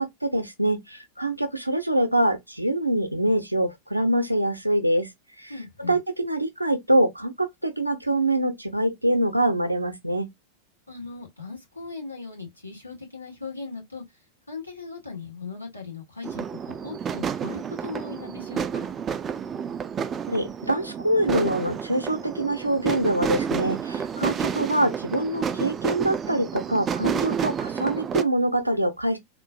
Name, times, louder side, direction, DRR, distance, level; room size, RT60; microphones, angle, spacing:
voice 1, 0.0-5.1 5.4-5.5 5.8-10.3 20.3-29.2, right 1 dB, 90° right, 0.6 m, -24 dB
voice 2, 5.5-6.0 10.9-14.0 14.5-18.9, left 4 dB, 85° left, 1.3 m, -38 dB
sound 1, 16.2-28.2, right 7 dB, 25° right, 0.3 m, -30 dB
3.7 x 2.5 x 2.3 m
figure-of-eight pair, 90°, 0 cm